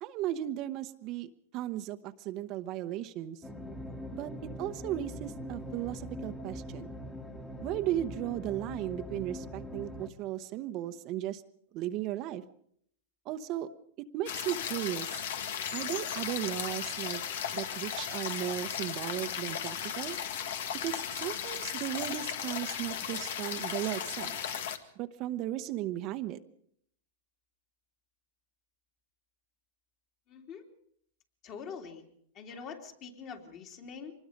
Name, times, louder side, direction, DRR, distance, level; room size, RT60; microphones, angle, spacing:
voice 1, 0.0-3.4 4.1-4.3 4.6-6.9 7.6-11.4 11.7-12.4 13.3-13.7 14.1-15.2 15.7-17.2 17.5-20.2 20.8-24.4 25.0-26.4, right 13 dB, 40° right, 8 dB, 0.9 m, -36 dB
sound 1, 3.4-10.1, equal, 10° left, 1.6 m, -42 dB
sound 2, 14.3-24.8, left 8 dB, 70° left, 1.8 m, -36 dB
voice 2, 30.3-30.7 31.4-32.0 32.3-34.1, left 6 dB, 35° left, 3 dB, 3.1 m, -44 dB
24.5 x 20.5 x 5.2 m, 0.65 s
hypercardioid pair, 140°, 0 cm